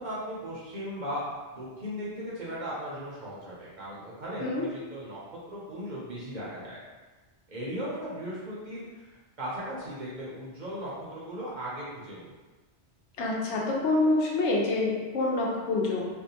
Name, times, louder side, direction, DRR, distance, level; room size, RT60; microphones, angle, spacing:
voice 1, 0.0-6.8 7.5-12.4, equal, 50° right, -7 dB, 0.7 m, -37 dB
voice 2, 13.2-16.1, left 2 dB, 80° left, -2 dB, 0.9 m, -26 dB
2.5 x 2.1 x 2.8 m, 1.3 s
omnidirectional pair, 1.2 m